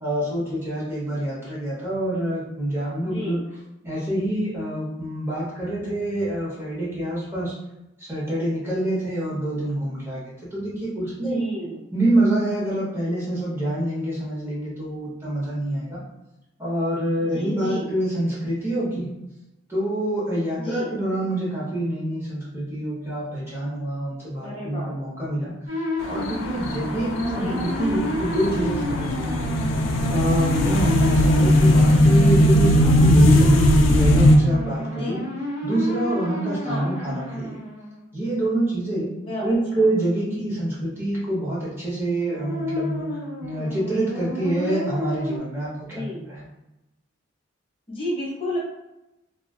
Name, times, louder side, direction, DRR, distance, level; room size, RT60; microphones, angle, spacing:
voice 1, 0.0-3.4 3.8-7.5 8.0-11.5 11.9-16.0 16.6-19.1 19.7-25.5 26.0-29.4 30.1-33.5 33.9-35.2 35.6-37.6 38.1-39.1 39.4-43.1 43.4-46.4, right 1 dB, 15° right, -8 dB, 0.7 m, -26 dB
voice 2, 3.0-3.4 11.1-11.8 17.2-18.0 20.6-21.0 24.4-24.9 27.3-27.6 34.9-35.2 36.6-36.9 39.2-39.9 45.8-46.3 47.9-48.6, left 1 dB, 30° left, -6 dB, 0.7 m, -32 dB
sound 1, 25.7-38.0 42.2-45.4, left 1 dB, 65° right, 1.0 m, -30 dB
sound 2, 26.0-34.4, left 1 dB, 75° left, 0.3 m, -18 dB
2.4 x 2.3 x 2.2 m, 0.94 s
head